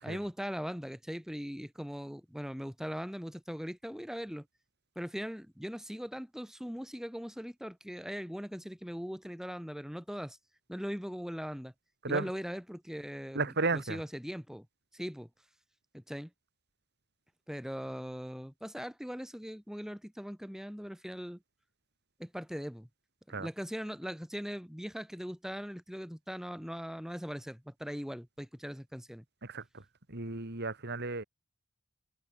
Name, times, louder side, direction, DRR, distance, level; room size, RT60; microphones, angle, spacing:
voice 1, 0.0-4.5 5.0-10.4 10.7-11.7 12.0-14.7 14.9-15.3 15.9-16.3 17.5-21.4 22.2-22.9 23.3-29.2, equal, ahead, 5.8 m, -40 dB
voice 2, 13.3-14.0 23.3-23.5 29.4-29.8 30.1-31.2, right 3 dB, 55° right, 2.9 m, -33 dB
head